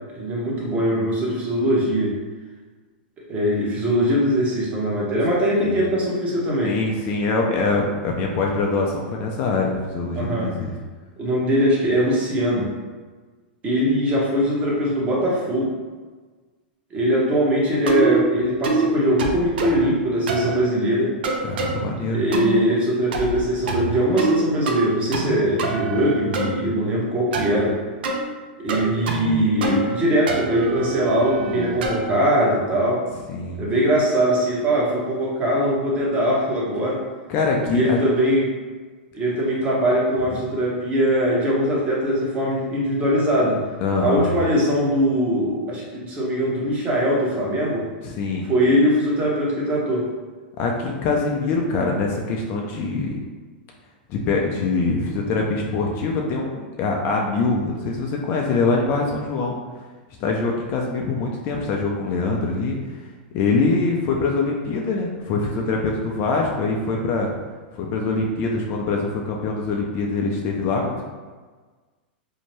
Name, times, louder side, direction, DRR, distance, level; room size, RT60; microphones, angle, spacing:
voice 1, 0.2-2.1 3.3-6.7 10.1-10.5 11.2-12.7 13.6-15.7 16.9-21.1 21.8-27.8 28.6-33.0 33.6-37.0 37.7-38.5 39.1-43.6 44.0-47.9 48.5-50.1, equal, 25° right, -4 dB, 0.8 m, -21 dB
voice 2, 6.6-10.7 21.5-22.2 33.3-33.6 37.3-38.0 43.8-44.3 48.0-48.5 50.6-53.2 54.1-59.6 60.2-62.8 63.3-67.3 67.7-71.0, left 3 dB, 40° left, 0 dB, 0.4 m, -23 dB
sound 1, 17.9-18.2 18.6-18.9 19.2-19.8 20.3-20.5 21.2-21.7 22.3-22.6 23.1-23.4 23.7-24.4 24.7-25.3 25.6-26.5 27.3-27.6 28.0-28.2 28.7-29.3 29.6-30.0 30.3-32.1, right 4 dB, 75° right, 0.5 m, -25 dB
2.7 x 2.1 x 3.1 m, 1.4 s
hypercardioid pair, 125°, 6 cm